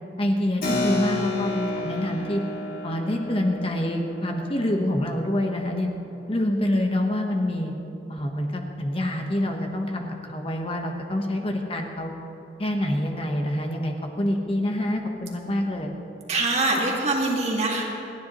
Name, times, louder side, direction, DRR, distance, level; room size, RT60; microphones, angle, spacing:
voice 1, 0.2-2.4 2.8-5.9 6.3-7.7 8.1-12.1 12.6-15.9, left 1 dB, 30° left, 2 dB, 1.1 m, -26 dB
Keyboard (musical), 0.6-6.6, left 2 dB, 55° left, 2.2 m, -32 dB
voice 2, 16.3-17.8, right 2 dB, 40° right, -2 dB, 2.0 m, -23 dB
28.5 x 10.5 x 3.0 m, 2.8 s
head